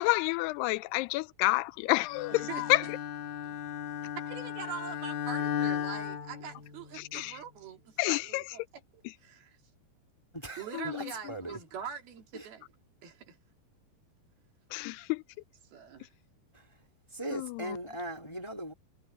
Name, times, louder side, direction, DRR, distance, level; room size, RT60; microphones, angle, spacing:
voice 1, 0.0-2.8 7.1-7.4 8.0-8.4 10.7-10.9 14.7-15.2 17.3-17.8, left 21 dB, 90° left, 2.6 m, -29 dB
Bowed string instrument, 2.1-7.1, left 9 dB, 65° left, 3.8 m, -35 dB
voice 2, 2.3-2.9 3.4-3.6 4.2-9.6 10.6-12.7 13.0-13.4 15.7-16.1, right 7 dB, 70° right, 4.8 m, -43 dB
voice 3, 10.3-11.6 12.3-12.5 17.1-18.7, right 1 dB, 10° left, 2.0 m, -39 dB
omnidirectional pair, 4.6 m